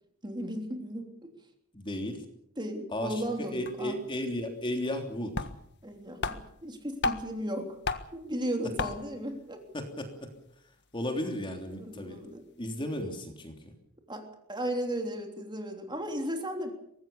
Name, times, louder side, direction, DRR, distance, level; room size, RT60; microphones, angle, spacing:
voice 1, 0.2-1.3 2.6-3.9 5.8-7.8 8.1-9.6 11.7-12.4 14.1-16.7, equal, 20° right, 4 dB, 3.3 m, -35 dB
voice 2, 1.7-2.2 2.9-5.3 9.7-10.3 10.9-12.2 12.6-13.7, left 1 dB, 20° left, 4 dB, 3.2 m, -34 dB
sound 1, 3.4-3.5 3.7-3.8 5.0-5.1 5.3-5.9 6.2-7.4 7.8-8.2 8.8-9.2, left 3 dB, 50° left, 1.6 m, -33 dB
24.0 x 19.0 x 7.1 m, 0.71 s
head